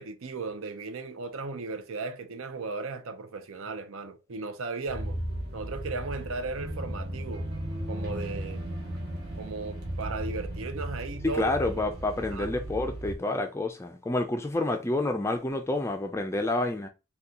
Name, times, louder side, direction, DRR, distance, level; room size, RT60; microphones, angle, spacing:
voice 1, 0.0-5.2 5.5-7.5 7.9-8.6 9.4-11.9 12.3-12.5, right 4 dB, 80° right, 0.6 m, -36 dB
sound 1, 4.9-13.2, right 1 dB, 50° right, 0.9 m, -36 dB
voice 2, 11.2-16.9, left 2 dB, 15° left, 0.3 m, -29 dB
2.7 x 2.3 x 3.6 m
head